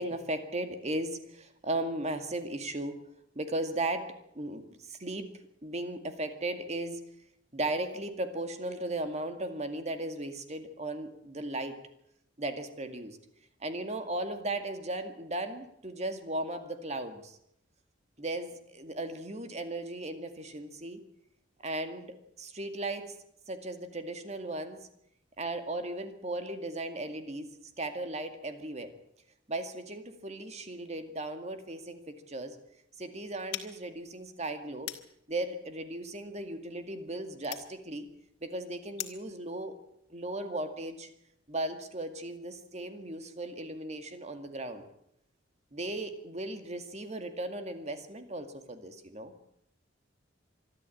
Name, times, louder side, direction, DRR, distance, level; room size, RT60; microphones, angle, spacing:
voice 1, 0.0-3.0 3.4-5.3 5.6-7.0 7.5-11.8 12.4-13.2 13.6-17.4 18.2-21.0 21.6-23.1 23.5-24.8 25.4-27.5 27.8-28.9 29.5-32.6 33.0-34.9 35.3-38.1 38.4-39.7 40.1-41.1 41.5-44.8 45.7-49.3, right 1 dB, 35° right, 8 dB, 2.2 m, -36 dB
sound 1, 33.5-39.3, left 11 dB, 65° left, 2.0 m, -45 dB
25.0 x 12.5 x 8.6 m, 0.76 s
head